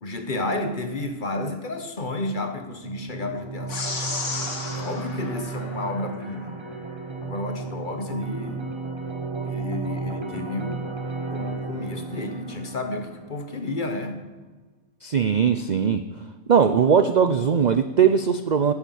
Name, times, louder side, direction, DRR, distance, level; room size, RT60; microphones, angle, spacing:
voice 1, 0.0-4.1 4.7-6.6 7.2-8.7 9.4-10.8 11.3-14.2, left 2 dB, 40° left, 6 dB, 1.3 m, -31 dB
sound 1, 2.8-13.8, right 4 dB, 20° right, 1.1 m, -34 dB
sound 2, 3.7-6.4, left 3 dB, 65° left, 2.0 m, -33 dB
voice 2, 15.0-16.0 16.5-18.7, right 7 dB, 50° right, 10 dB, 0.5 m, -19 dB
10.5 x 10.0 x 8.3 m, 1.3 s
omnidirectional pair, 1.4 m